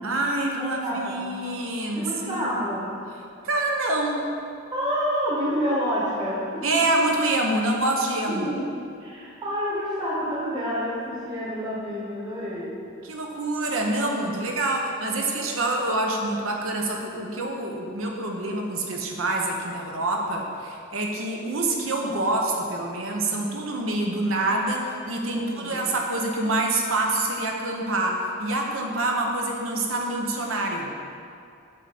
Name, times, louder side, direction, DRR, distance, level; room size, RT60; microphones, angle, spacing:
voice 1, 0.0-2.6 3.4-4.2 6.6-8.5 13.0-31.2, right 2 dB, 90° right, 0 dB, 1.0 m, -26 dB
voice 2, 0.6-1.3 2.0-3.0 4.7-6.7 8.3-8.7 9.0-12.7 25.2-25.9, equal, 20° right, -7 dB, 1.1 m, -28 dB
8.9 x 3.8 x 5.9 m, 2.5 s
head